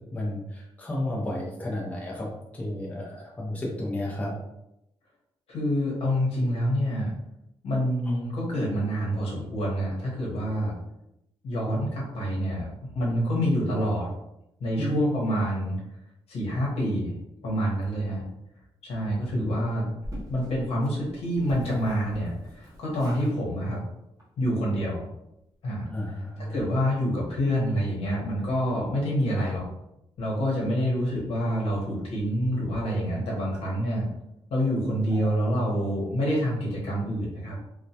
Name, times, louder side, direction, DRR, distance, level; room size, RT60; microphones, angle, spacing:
voice 1, 0.1-2.3 2.5-4.3 8.1-8.2 14.8-15.0 19.4-19.8 25.9-26.5 35.1-35.3, left 1 dB, 15° left, -3 dB, 0.5 m, -32 dB
voice 2, 5.5-7.1 7.6-10.7 11.4-12.7 12.9-14.1 14.6-15.8 16.3-17.1 17.4-18.2 18.8-19.9 20.3-23.8 24.4-25.0 25.6-25.9 26.4-29.6 30.2-34.1 34.5-37.6, equal, 75° left, -4 dB, 0.9 m, -27 dB
sound 1, 20.0-23.4 23.6-23.8 24.2-24.3 24.5-24.6, equal, 35° right, 0.9 m, -42 dB
2.2 x 2.1 x 2.7 m, 0.85 s
cardioid pair, 120°, 10 cm